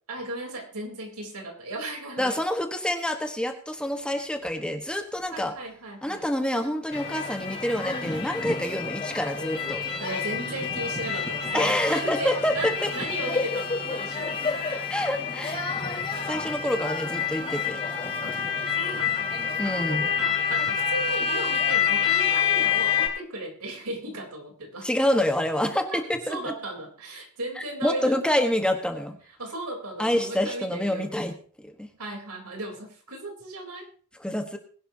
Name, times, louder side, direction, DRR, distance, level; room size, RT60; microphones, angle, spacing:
voice 1, 0.1-2.4 5.3-6.3 10.0-14.9 18.2-18.4 18.7-24.9 25.9-26.0 26.3-28.2 29.2-31.1 32.0-33.9, right 1 dB, 90° right, 2 dB, 3.7 m, -36 dB
voice 2, 2.2-5.5 6.0-9.8 11.5-12.9 14.9-15.6 16.3-17.8 19.6-20.1 24.8-26.4 27.8-29.2 30.0-31.3 31.6-31.9 34.2-34.6, left 1 dB, 5° left, 5 dB, 1.3 m, -27 dB
sound 1, 6.9-23.1, left 6 dB, 25° left, 4.8 m, -28 dB
20.5 x 11.0 x 2.8 m, 0.43 s
head